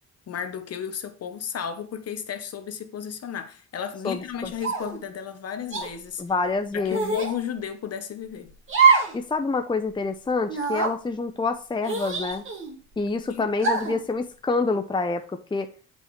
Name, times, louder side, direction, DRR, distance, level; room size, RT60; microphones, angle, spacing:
voice 1, 0.3-6.2 6.7-8.5 13.3-13.5, left 8 dB, 55° left, 1.1 m, -33 dB
voice 2, 4.0-4.5 6.2-7.2 9.1-12.4 13.0-15.7, left 3 dB, 15° left, 0.7 m, -27 dB
sound 1, 4.6-5.0 5.7-5.9 6.9-7.3 8.7-9.2 9.5-9.6 10.5-10.9 11.8-12.8 13.6-14.0, right 5 dB, 40° right, 2.0 m, -23 dB
7.5 x 5.2 x 3.2 m
cardioid pair, 90°, 30 cm